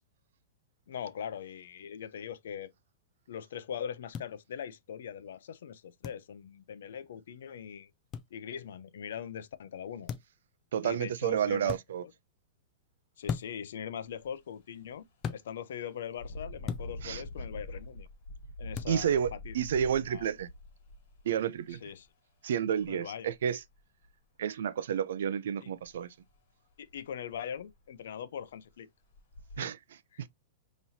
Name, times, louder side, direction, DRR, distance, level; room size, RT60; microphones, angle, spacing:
voice 1, 0.9-2.7 3.3-7.9 8.3-10.1 10.8-11.7 12.0-12.1 13.2-18.1 18.6-19.5 20.1-20.3 21.8-22.1 22.9-23.3 25.6-25.7 26.8-28.9 29.6-29.7 30.1-30.2, left 8 dB, 70° left, 0.5 m, -41 dB
sound 1, 4.1-4.3 6.0-6.2 8.1-8.3 10.1-10.4 11.6-11.8 13.2-13.7 15.2-15.4 16.6-16.9 18.7-19.0, left 7 dB, 15° left, 0.3 m, -36 dB
voice 2, 10.7-12.0 17.0-17.2 18.9-20.5 21.2-21.8 22.4-23.6 24.4-26.1 29.6-29.8 30.2-30.3, right 8 dB, 70° right, 0.5 m, -30 dB
Engine, 14.1-14.3 14.7-14.9 16.1-21.9 22.8-22.9 23.3-24.1 25.8-26.0 26.3-26.4 26.9-27.0 27.3-27.8 28.4-28.5 29.1-29.6, left 2 dB, 45° left, 1.6 m, -44 dB
5.6 x 3.0 x 2.6 m
supercardioid pair, 180°, 0 cm